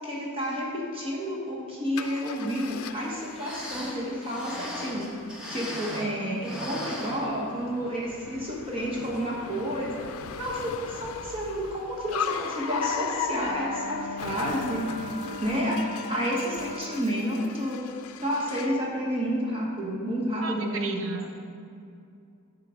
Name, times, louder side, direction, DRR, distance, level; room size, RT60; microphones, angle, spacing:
voice 1, 0.0-5.1 5.5-9.9 10.4-15.1 15.4-15.8 16.1-17.8 18.2-21.2, equal, 25° right, -4 dB, 1.2 m, -30 dB
Car, 2.0-18.8, left 7 dB, 75° left, 0.4 m, -38 dB
sound 1, 3.3-6.2 6.4-7.8 8.2-8.3 9.0-9.2 9.6-9.7, equal, 5° right, 1.2 m, -38 dB
Wind instrument woodwind instrument, 13.4-17.3, left 1 dB, 55° left, 0.8 m, -40 dB
voice 2, 15.2-15.6 20.4-21.3, right 4 dB, 65° right, 5 dB, 0.8 m, -37 dB
10.5 x 3.8 x 6.2 m, 2.5 s
head